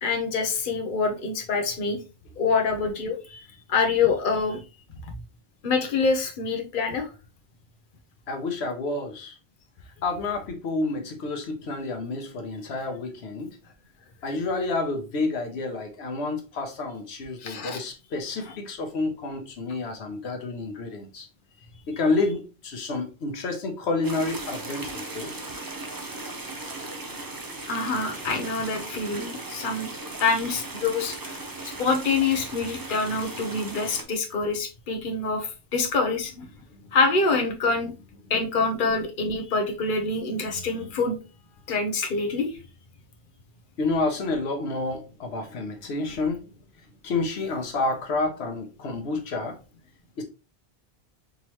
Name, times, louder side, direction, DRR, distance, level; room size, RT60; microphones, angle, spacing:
voice 1, 0.0-2.0 2.4-3.4 3.7-4.6 5.6-7.1 17.4-17.8 27.7-29.9 30.2-36.5 36.9-37.9 38.3-41.2 41.7-42.6, left 4 dB, 55° left, 1.0 m, -26 dB
voice 2, 8.3-9.4 10.0-13.6 14.2-21.3 21.9-25.3 36.7-36.8 43.8-46.5 47.0-49.6 50.2-50.3, left 3 dB, 85° left, 1.2 m, -29 dB
sound 1, 24.0-34.0, right 2 dB, 25° right, 0.6 m, -37 dB
5.2 x 3.1 x 3.0 m
omnidirectional pair, 1.1 m